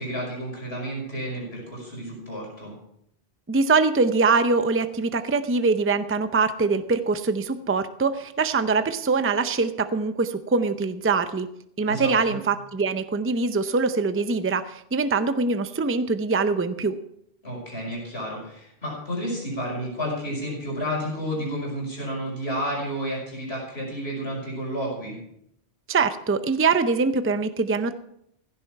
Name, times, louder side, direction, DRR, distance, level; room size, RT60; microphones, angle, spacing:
voice 1, 0.0-2.7 11.8-12.4 17.4-25.2, equal, 70° left, -3 dB, 6.0 m, -31 dB
voice 2, 3.5-11.5 11.8-17.0 25.9-27.9, right 4 dB, 15° right, 11 dB, 0.5 m, -23 dB
16.0 x 10.5 x 4.7 m, 0.74 s
omnidirectional pair, 1.1 m